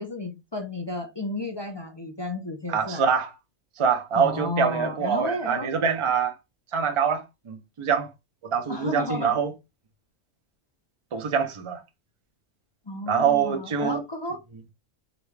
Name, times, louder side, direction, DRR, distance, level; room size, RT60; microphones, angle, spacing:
voice 1, 0.0-3.0 4.1-5.7 8.7-9.4 12.9-14.4, left 2 dB, 35° left, 0.4 m, -32 dB
voice 2, 2.7-3.3 3.8-6.3 6.7-8.1 8.4-9.5 11.1-11.8 13.1-14.0, right 6 dB, 35° right, 0.5 m, -24 dB
3.8 x 2.3 x 3.2 m
omnidirectional pair, 1.4 m